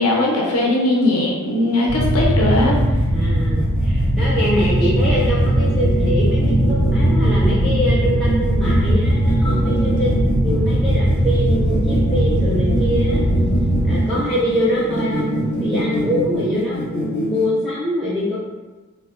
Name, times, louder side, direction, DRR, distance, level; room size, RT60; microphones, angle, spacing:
voice 1, 0.0-2.8, left 2 dB, 80° left, -1 dB, 0.5 m, -19 dB
sound 1, 1.9-13.9, equal, 80° right, 0.4 m, -19 dB
sound 2, 2.4-17.5, right 1 dB, 35° left, 0.7 m, -26 dB
voice 2, 3.1-10.1 10.4-13.3 13.8-15.3 15.6-18.4, equal, ahead, -9 dB, 0.4 m, -24 dB
3.4 x 2.1 x 2.4 m, 1.2 s
head